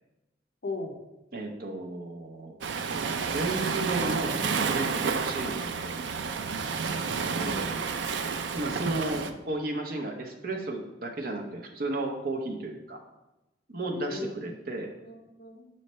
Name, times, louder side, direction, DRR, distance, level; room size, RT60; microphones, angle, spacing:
voice 1, 0.6-1.0 7.4-7.7 13.8-14.5 15.0-15.7, left 2 dB, 55° left, 3 dB, 0.7 m, -37 dB
voice 2, 1.3-2.6 3.3-6.0 6.3-6.4 8.5-13.0 13.7-14.9, right 2 dB, 50° right, 3 dB, 0.8 m, -33 dB
Waves surf, 2.6-9.3, right 5 dB, 80° right, 0.4 m, -30 dB
5.5 x 3.1 x 5.4 m, 0.99 s
head